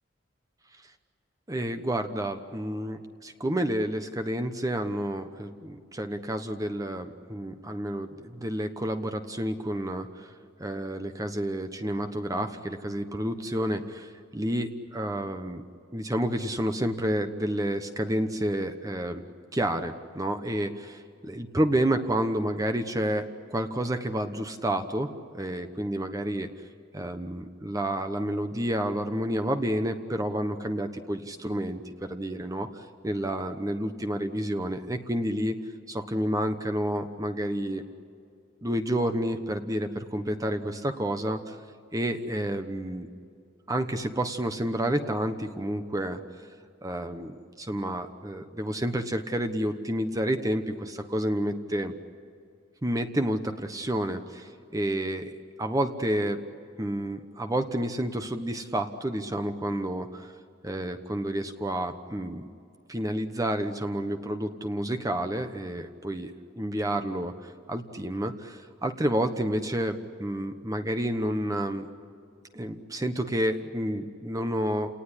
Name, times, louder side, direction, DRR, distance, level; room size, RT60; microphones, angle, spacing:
voice 1, 1.5-10.3 10.6-15.6 15.9-19.2 19.5-25.1 25.4-26.5 26.9-35.6 35.9-37.8 38.6-41.6 41.9-43.1 43.7-46.2 46.8-51.9 52.8-56.4 56.8-60.3 60.6-62.4 62.9-71.9 72.5-74.9, right 1 dB, 20° right, 7 dB, 1.1 m, -30 dB
30.0 x 18.5 x 10.0 m, 2.3 s
head